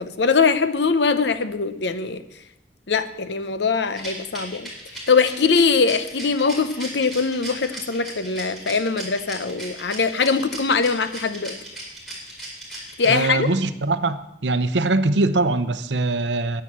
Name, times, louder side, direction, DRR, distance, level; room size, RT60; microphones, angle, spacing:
voice 1, 0.0-2.2 2.9-4.7 5.1-11.5 13.0-13.5, left 4 dB, 85° left, 0.8 m, -22 dB
Rattle, 3.9-13.5, right 1 dB, ahead, 4.7 m, -37 dB
voice 2, 13.1-16.6, right 2 dB, 90° right, 0.8 m, -22 dB
10.0 x 9.8 x 7.5 m
head